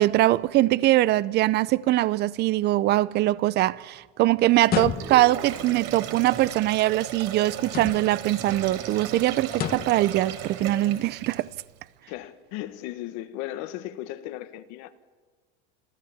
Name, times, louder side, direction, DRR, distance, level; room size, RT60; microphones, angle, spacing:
voice 1, 0.0-11.5, right 16 dB, 35° right, 0.5 m, -22 dB
sound 1, 4.6-5.4 7.6-8.3 9.5-10.0, left 9 dB, 30° left, 1.1 m, -31 dB
Sink (filling or washing), 4.8-11.7, right 8 dB, 60° right, 4.0 m, -36 dB
voice 2, 12.1-15.0, left 14 dB, 55° left, 1.5 m, -36 dB
27.5 x 14.5 x 7.3 m
supercardioid pair, 135°, 31 cm